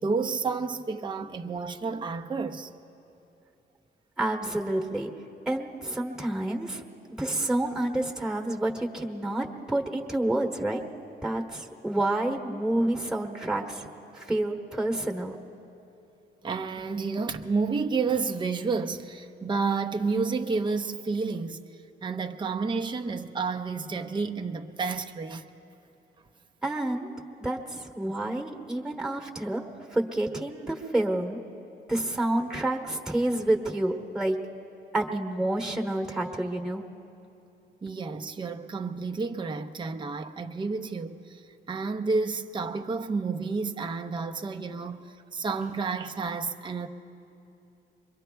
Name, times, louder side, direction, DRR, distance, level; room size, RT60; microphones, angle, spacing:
voice 1, 0.0-2.7 16.4-21.6 22.0-25.5 37.8-41.4 41.7-46.9, right 4 dB, 25° right, 0.6 m, -30 dB
voice 2, 4.2-5.1 5.5-10.8 11.2-13.9 14.1-15.4 26.6-27.1 27.4-29.6 29.9-31.4 31.9-34.4 34.9-36.8, right 1 dB, 5° right, 1.2 m, -29 dB
25.5 x 22.5 x 2.3 m
cardioid pair, 90°, 20 cm